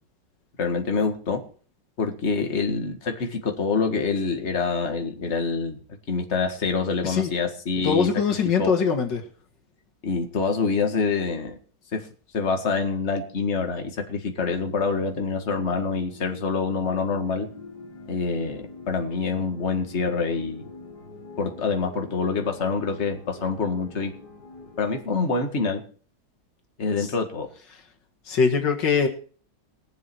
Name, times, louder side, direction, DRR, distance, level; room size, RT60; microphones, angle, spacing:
voice 1, 0.6-1.4 2.0-5.8 6.1-8.1 8.6-8.7 10.0-11.6 11.9-12.1 12.3-17.5 18.1-20.6 21.4-24.1 24.8-25.8 26.8-27.5, left 4 dB, 40° left, 4 dB, 2.1 m, -26 dB
voice 2, 7.8-9.2 27.0-27.1 28.3-29.1, left 6 dB, 85° left, 4 dB, 2.4 m, -22 dB
sound 1, 14.5-25.0, left 3 dB, 65° left, 2.3 m, -44 dB
21.5 x 7.3 x 4.6 m, 0.42 s
omnidirectional pair, 1.9 m